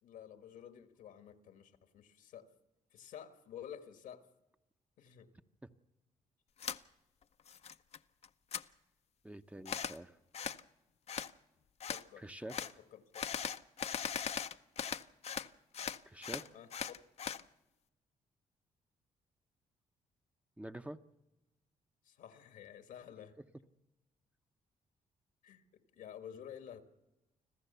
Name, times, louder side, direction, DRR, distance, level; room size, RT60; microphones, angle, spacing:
voice 1, 0.0-2.5 2.9-4.3 5.0-5.3 11.9-13.3 16.5-17.0 22.0-23.4 25.4-26.8, left 9 dB, 85° left, 1.6 m, -51 dB
sound 1, 6.6-6.8 7.2-8.0 8.2-8.6 9.6-10.0 10.3-10.6 11.1-11.3 11.8-12.0 12.5-12.7 13.1-15.5 15.7-17.4, left 7 dB, 50° left, 0.7 m, -39 dB
voice 2, 9.2-10.2 12.2-12.6 16.1-16.5 20.6-21.0, right 1 dB, 10° right, 0.8 m, -47 dB
26.0 x 15.0 x 6.9 m
cardioid pair, 75°, 14 cm